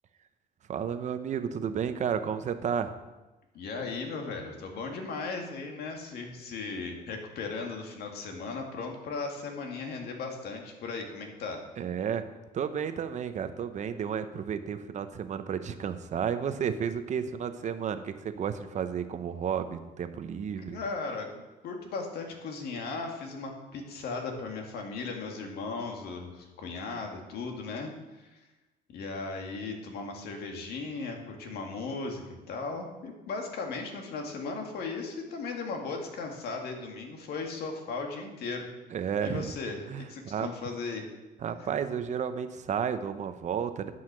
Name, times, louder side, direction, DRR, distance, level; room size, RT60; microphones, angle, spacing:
voice 1, 0.7-3.0 11.8-12.2 12.5-20.8 38.9-39.6 39.9-40.5 41.4-43.9, right 7 dB, 45° right, 10 dB, 0.8 m, -32 dB
voice 2, 3.5-11.6 20.7-27.9 28.2-28.4 28.9-38.7 39.2-41.1, left 4 dB, 70° left, 2 dB, 2.0 m, -37 dB
10.0 x 5.7 x 6.2 m, 1.1 s
cardioid pair, 110°, 17 cm